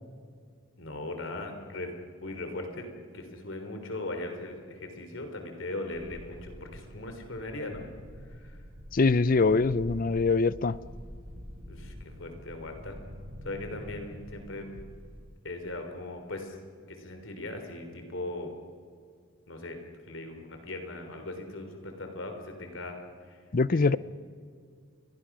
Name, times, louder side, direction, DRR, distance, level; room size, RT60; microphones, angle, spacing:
voice 1, 0.8-1.9 2.2-2.9 3.1-7.8 8.3-8.5 11.7-13.0 13.4-14.8 15.4-16.5 16.9-18.6 19.5-19.8 20.1-23.0 23.3-23.4 23.7-24.0, left 2 dB, 65° left, 5 dB, 3.6 m, -39 dB
sound 1, 5.9-15.3, equal, 85° right, 7.7 m, -46 dB
voice 2, 8.9-10.8 23.5-24.0, left 4 dB, 40° left, 18 dB, 0.5 m, -23 dB
30.0 x 23.0 x 6.2 m, 2.2 s
head